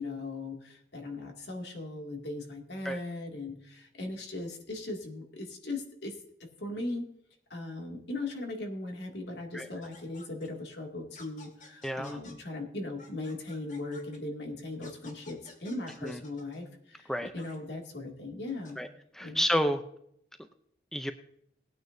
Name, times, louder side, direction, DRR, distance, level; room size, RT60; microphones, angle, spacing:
voice 1, 0.0-6.2 6.6-7.0 7.5-18.8 19.2-19.4, left 2 dB, 75° left, 1 dB, 2.3 m, -38 dB
sound 1, 9.8-10.5 11.1-12.3 13.0-14.2 14.8-16.6 17.4-17.6 18.5-18.7, left 3 dB, 45° left, 2.0 m, -52 dB
voice 2, 11.8-12.2 16.0-16.2 17.1-17.3 18.8-18.9 19.1-19.8 20.9-21.1, equal, 5° left, 7 dB, 0.5 m, -30 dB
19.5 x 9.2 x 2.7 m, 0.71 s
head